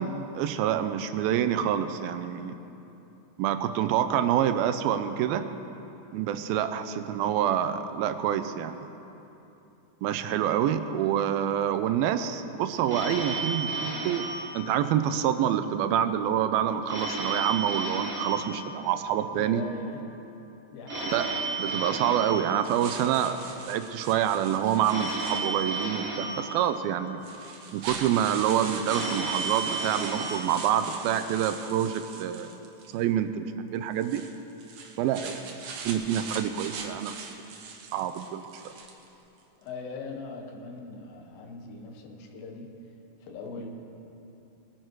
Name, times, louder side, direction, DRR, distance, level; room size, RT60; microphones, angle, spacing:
voice 1, 0.0-2.5 3.4-5.5 6.1-8.9 10.0-14.2 14.5-19.6 21.1-21.3 21.6-23.4 23.7-27.2 27.7-32.7 32.9-34.2 35.0-35.5 35.8-37.3 37.9-38.4, right 10 dB, 85° right, 10 dB, 2.4 m, -27 dB
voice 2, 6.7-7.1 19.3-20.1 20.7-21.2 39.6-42.7 43.2-43.7, left 4 dB, 75° left, 3 dB, 3.0 m, -41 dB
Telephone, 12.9-15.4 16.9-19.4 20.9-23.4 24.9-27.4 28.9-31.4, right 3 dB, 45° right, 2.5 m, -34 dB
sound 1, 22.6-25.8 26.7-26.8 27.2-33.0 33.9-39.1, right 5 dB, 65° right, 1.7 m, -41 dB
21.0 x 11.0 x 4.6 m, 2.9 s
omnidirectional pair, 4.3 m